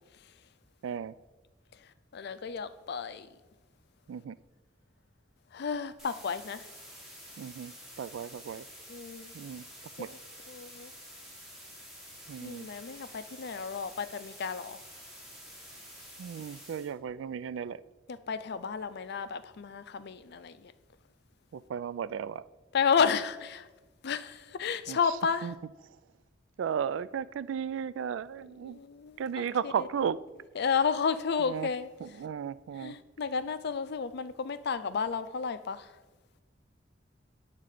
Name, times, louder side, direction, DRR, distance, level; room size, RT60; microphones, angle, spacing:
voice 1, 0.8-1.1 4.1-4.4 7.4-7.7 8.0-8.7 9.3-9.6 10.0-10.1 12.3-12.7 16.2-17.8 21.5-22.4 24.9-25.2 25.4-25.5 26.6-28.8 29.2-30.2 31.5-31.7 32.0-33.0, right 7 dB, 85° right, 0.3 m, -35 dB
voice 2, 2.1-3.3 5.5-6.7 8.9-9.3 10.0-10.2 10.5-10.9 12.4-14.8 18.1-20.7 22.7-23.7 24.0-25.5 28.6-29.2 29.6-29.7 30.6-31.9 32.8-35.9, left 6 dB, 60° left, 0.5 m, -32 dB
sound 1, 6.0-16.9, equal, ahead, 1.9 m, -49 dB
9.3 x 3.7 x 6.5 m
head